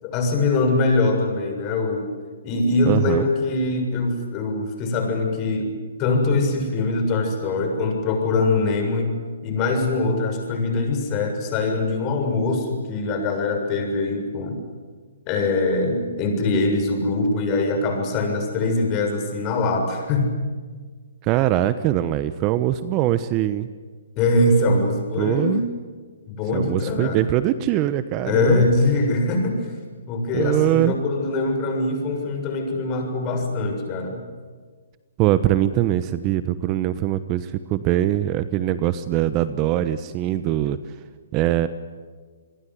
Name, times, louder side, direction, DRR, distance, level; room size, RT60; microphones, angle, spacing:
voice 1, 0.0-2.1 2.4-5.7 6.0-9.1 9.4-14.6 15.3-20.3 24.2-25.6 26.3-27.2 28.3-29.7 30.1-34.2, left 2 dB, 30° left, 4 dB, 7.1 m, -22 dB
voice 2, 2.9-3.3 21.2-23.7 25.2-25.6 26.5-28.7 30.3-30.9 35.2-40.8 41.3-41.7, right 13 dB, 30° right, 13 dB, 1.1 m, -22 dB
28.5 x 22.0 x 9.6 m, 1.5 s
hypercardioid pair, 130°, 0 cm